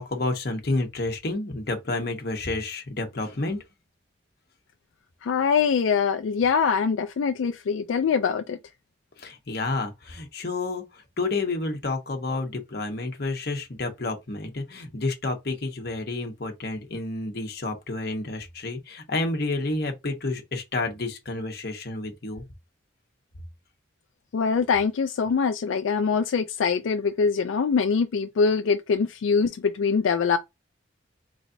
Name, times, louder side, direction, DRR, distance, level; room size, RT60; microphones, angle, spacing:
voice 1, 0.0-3.6 9.2-22.4, left 2 dB, 55° left, 0.9 m, -30 dB
voice 2, 5.2-8.6 24.3-30.4, left 5 dB, 90° left, 0.4 m, -23 dB
4.0 x 3.2 x 2.6 m
head